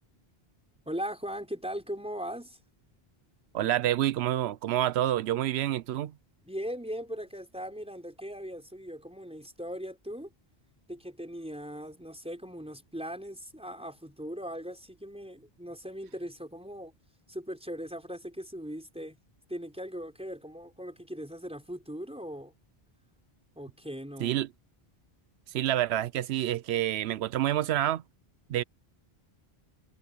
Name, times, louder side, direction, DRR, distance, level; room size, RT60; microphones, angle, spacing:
voice 1, 0.9-2.6 6.4-10.3 10.9-16.9 17.3-19.2 19.5-22.5 23.5-24.4, equal, 5° right, 4.8 m, -39 dB
voice 2, 3.5-6.1 24.2-24.5 25.5-28.0 28.5-28.6, right 12 dB, 90° right, 0.8 m, -28 dB
omnidirectional pair, 1.0 m